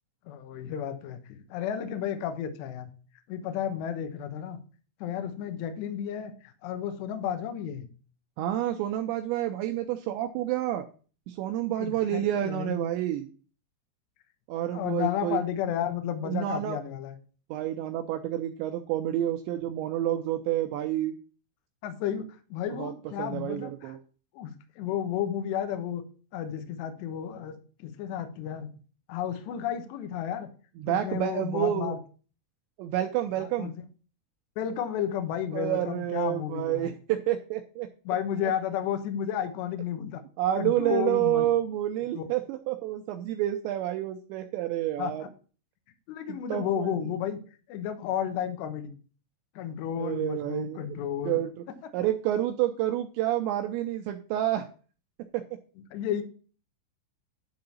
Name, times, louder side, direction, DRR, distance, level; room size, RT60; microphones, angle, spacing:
voice 1, 0.3-2.9 3.3-4.6 5.0-7.9 11.8-12.8 14.7-17.2 21.8-24.0 24.3-26.0 26.3-28.7 29.1-30.5 30.9-32.0 33.4-33.8 34.6-36.9 38.1-40.2 40.5-41.5 42.1-42.3 45.0-45.3 46.1-47.4 47.7-48.9 49.6-51.4 55.9-56.2, left 9 dB, 70° left, 7 dB, 2.9 m, -32 dB
voice 2, 8.4-10.9 11.3-13.3 14.5-15.4 16.2-16.8 17.5-21.2 22.7-22.9 23.2-24.0 30.8-31.9 32.8-33.7 35.5-37.9 38.4-38.5 40.4-45.2 46.5-47.1 50.0-51.5 51.9-54.7 55.2-55.4, right 13 dB, 90° right, 6 dB, 2.6 m, -29 dB
10.5 x 3.9 x 7.0 m, 0.39 s
omnidirectional pair, 5.8 m